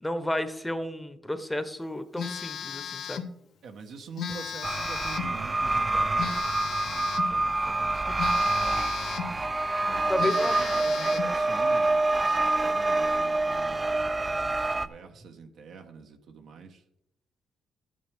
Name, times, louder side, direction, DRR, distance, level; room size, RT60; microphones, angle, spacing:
voice 1, 0.0-3.3 8.2-8.3 10.1-10.6, left 1 dB, 10° left, 10 dB, 1.0 m, -32 dB
Telephone, 2.2-3.3 4.2-5.4 6.2-7.4 8.2-9.4 9.8-9.9 10.2-11.4, left 7 dB, 70° left, 1.0 m, -35 dB
voice 2, 3.6-8.2 9.2-9.5 9.8-14.0 14.3-16.8, right 5 dB, 70° right, 4 dB, 1.4 m, -45 dB
sound 1, 4.6-14.9, right 2 dB, 25° right, 0.5 m, -26 dB
13.0 x 9.2 x 3.6 m, 0.78 s
cardioid pair, 90°, 0 cm